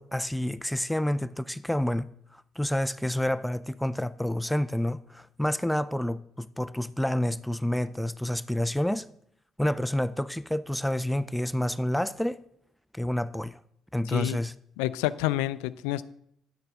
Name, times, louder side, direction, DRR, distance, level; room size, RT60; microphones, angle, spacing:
voice 1, 0.0-2.1 2.3-9.1 9.6-12.4 12.9-13.6 13.9-14.5, left 1 dB, 5° left, 0.4 m, -29 dB
voice 2, 14.1-14.4 14.8-16.0, left 15 dB, 80° left, 0.4 m, -28 dB
10.5 x 6.6 x 4.9 m
hypercardioid pair, 55°, 0 cm